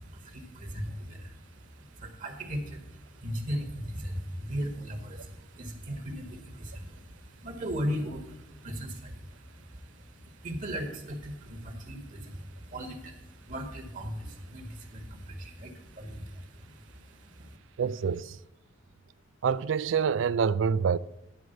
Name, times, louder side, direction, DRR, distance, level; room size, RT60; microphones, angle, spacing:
voice 1, 0.0-17.6, equal, 40° right, 1.6 m, -38 dB
voice 2, 17.8-18.4 19.4-21.0, right 6 dB, 80° right, 0.4 m, -26 dB
10.5 x 4.7 x 7.8 m
head